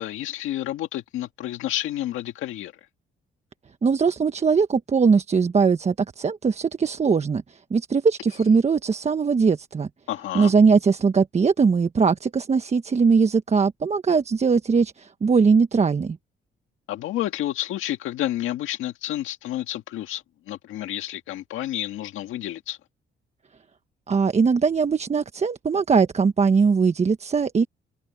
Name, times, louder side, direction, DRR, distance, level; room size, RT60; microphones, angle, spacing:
voice 1, 0.0-2.7 10.1-10.5 16.9-22.8, left 13 dB, 90° left, 2.0 m, -30 dB
voice 2, 3.8-9.9 10.3-16.2 24.1-27.7, right 5 dB, 35° right, 1.2 m, -20 dB
cardioid pair, 90°, 20 cm